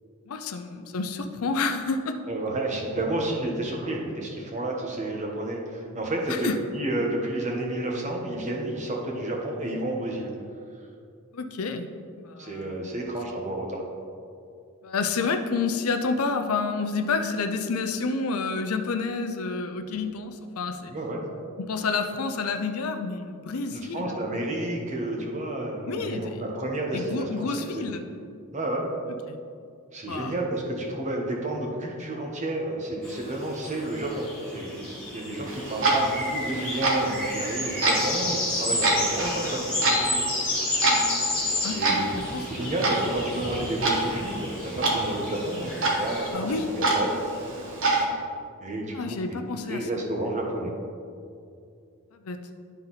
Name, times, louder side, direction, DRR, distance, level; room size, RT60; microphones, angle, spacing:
voice 1, 0.3-2.2 6.3-6.5 11.3-11.9 12.2-12.9 14.8-20.9 21.6-24.1 25.9-26.4 26.9-28.0 29.3-29.4 30.1-30.3 41.6-42.1 42.3-42.7 46.3-46.7 48.9-49.9 52.1-52.4, left 4 dB, 75° left, 7 dB, 0.6 m, -29 dB
voice 2, 2.3-6.5 6.7-10.3 12.4-13.8 20.9-21.2 23.7-27.5 27.7-27.8 28.5-28.9 29.9-40.2 41.7-42.0 42.5-47.2 47.5-47.6 48.6-49.4 49.7-50.7, right 1 dB, 35° right, -1 dB, 1.1 m, -31 dB
sound 1, 33.0-46.3, left 2 dB, 5° left, 1.9 m, -32 dB
Clock, 35.5-48.0, right 2 dB, 60° right, 1.2 m, -28 dB
11.5 x 4.1 x 4.0 m, 2.4 s
head